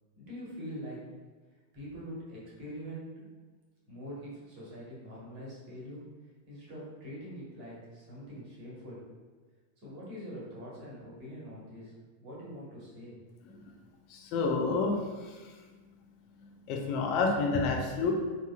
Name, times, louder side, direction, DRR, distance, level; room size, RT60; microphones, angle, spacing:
voice 1, 0.1-1.0 1.7-3.3 3.9-6.0 6.5-9.0 9.8-11.9 12.2-13.2 13.5-13.6, equal, 40° right, -6 dB, 1.3 m, -44 dB
voice 2, 14.1-14.9 15.2-15.4 16.7-18.1, left 4 dB, 45° left, 0 dB, 0.6 m, -29 dB
4.1 x 2.7 x 2.4 m, 1.4 s
figure-of-eight pair, 90°, 0 cm